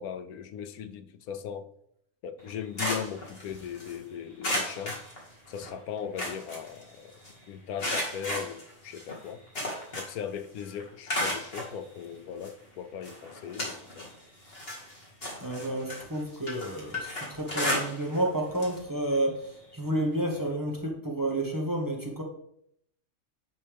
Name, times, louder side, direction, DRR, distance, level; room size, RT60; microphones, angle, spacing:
voice 1, 0.0-1.7 2.2-5.0 5.5-7.1 7.5-9.4 10.0-14.1, left 8 dB, 85° left, 1.1 m, -38 dB
sound 1, 2.4-3.9 4.4-5.7 6.0-7.3 7.8-10.3 10.6-11.7 12.4-12.5 13.0-14.1 14.5-18.3 18.5-18.8 19.1-19.2 20.4-20.5, left 1 dB, 40° left, 2.2 m, -34 dB
voice 2, 15.4-22.2, right 1 dB, 15° right, 1.1 m, -30 dB
9.6 x 5.5 x 3.4 m
omnidirectional pair, 1.5 m